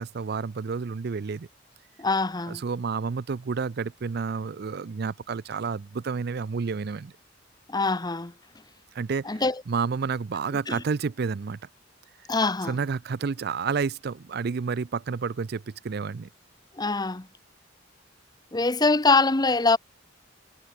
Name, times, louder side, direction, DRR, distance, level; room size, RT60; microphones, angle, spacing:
voice 1, 0.0-1.5 2.5-7.1 9.0-9.3 9.7-11.6 12.7-16.3, right 5 dB, 55° right, 0.5 m, -30 dB
voice 2, 2.0-2.6 7.7-8.3 9.2-9.6 10.7-10.8 12.3-12.8 16.8-17.3 18.5-19.8, left 3 dB, 20° left, 0.9 m, -23 dB
head